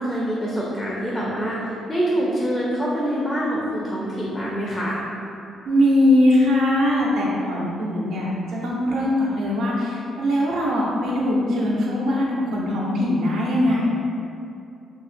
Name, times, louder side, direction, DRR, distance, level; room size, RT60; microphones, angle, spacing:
voice 1, 0.0-5.0, equal, 10° left, -5 dB, 0.4 m, -25 dB
voice 2, 5.6-13.9, left 1 dB, 60° right, -4 dB, 0.7 m, -21 dB
2.8 x 2.4 x 4.2 m, 2.6 s
cardioid pair, 170°, 0 cm